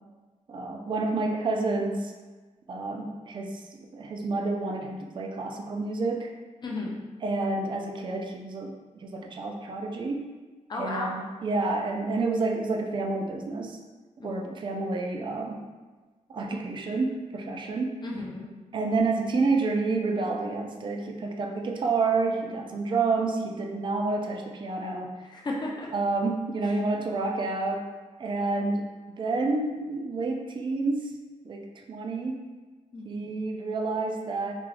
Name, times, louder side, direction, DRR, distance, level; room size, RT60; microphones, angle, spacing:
voice 1, 0.5-2.1 2.7-6.3 7.2-10.3 10.7-13.8 14.2-15.6 16.3-18.0 18.7-25.1 25.9-27.9 28.2-28.9 29.2-31.1 31.4-32.4 33.0-34.5, right 3 dB, 35° right, 2 dB, 0.4 m, -29 dB
voice 2, 6.6-7.0 10.7-11.2 14.2-14.5 18.0-18.5 25.3-25.9 32.9-33.3, left 2 dB, 35° left, -2 dB, 0.5 m, -34 dB
3.7 x 2.3 x 3.2 m, 1.3 s
wide cardioid pair, 175°, 13 cm